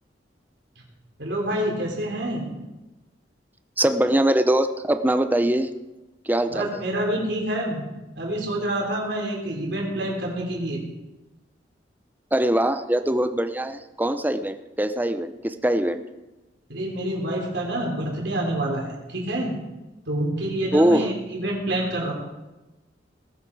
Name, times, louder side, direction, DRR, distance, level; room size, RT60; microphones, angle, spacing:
voice 1, 1.2-2.4 6.5-7.8 8.2-10.8 16.7-19.5 20.1-22.1, right 1 dB, 70° right, -1 dB, 3.8 m, -27 dB
voice 2, 3.8-5.7 6.3-6.8 12.3-16.0 20.7-21.1, right 1 dB, 10° right, 9 dB, 0.7 m, -22 dB
19.0 x 8.2 x 4.8 m, 1.1 s
head